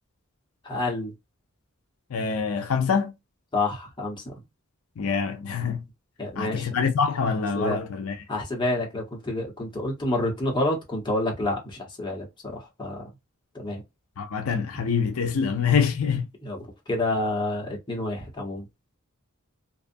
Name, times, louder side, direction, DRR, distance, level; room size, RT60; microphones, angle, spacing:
voice 1, 0.6-1.1 3.5-4.3 6.2-6.7 7.5-7.8 8.3-13.1 13.5-13.8 16.4-18.7, left 2 dB, 20° left, 1.0 m, -28 dB
voice 2, 2.1-3.1 5.0-5.8 6.4-8.2 14.2-16.3, left 6 dB, 75° left, 0.5 m, -25 dB
2.6 x 2.4 x 2.5 m
head